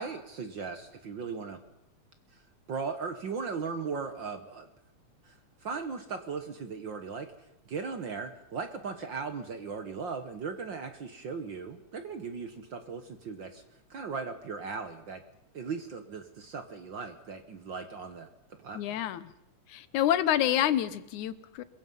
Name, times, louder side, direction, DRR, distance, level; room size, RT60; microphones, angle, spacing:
voice 1, 0.0-1.6 2.3-2.4 2.7-4.7 5.2-7.3 7.6-13.6 13.9-15.2 15.5-18.3 18.6-19.0, right 5 dB, 50° right, 8 dB, 1.5 m, -38 dB
voice 2, 18.8-19.3 19.7-21.6, left 11 dB, 85° left, 14 dB, 2.4 m, -28 dB
25.5 x 22.5 x 5.5 m, 0.87 s
omnidirectional pair, 3.3 m